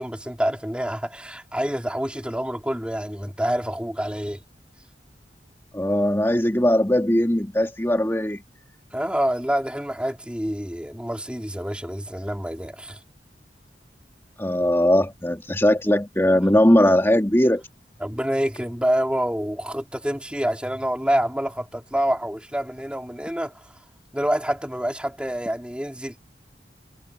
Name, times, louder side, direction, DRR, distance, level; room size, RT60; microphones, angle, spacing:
voice 1, 0.0-4.4 8.9-13.0 18.0-23.5 24.1-26.2, equal, 5° right, 3.4 m, -27 dB
voice 2, 5.7-8.4 14.4-17.6, left 1 dB, 15° left, 2.6 m, -19 dB
head